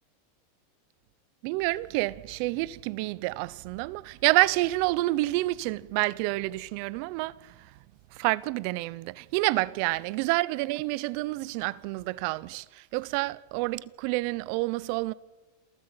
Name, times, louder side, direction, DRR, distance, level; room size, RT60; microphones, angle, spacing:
voice 1, 1.4-7.3 8.2-12.6 12.9-15.1, right 20 dB, 55° right, 0.8 m, -28 dB
27.5 x 13.5 x 8.9 m
supercardioid pair, 130°, 0 cm